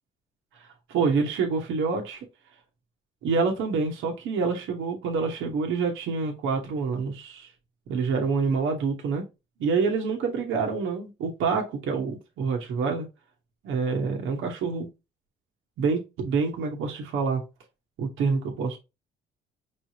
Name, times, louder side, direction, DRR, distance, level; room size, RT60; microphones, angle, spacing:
voice 1, 0.9-2.3 3.2-7.5 7.9-9.2 9.6-13.1 13.6-14.9 15.8-17.4 18.0-18.8, right 4 dB, 85° right, 1.2 m, -27 dB
5.3 x 3.2 x 2.8 m
cardioid pair, 90°, 20 cm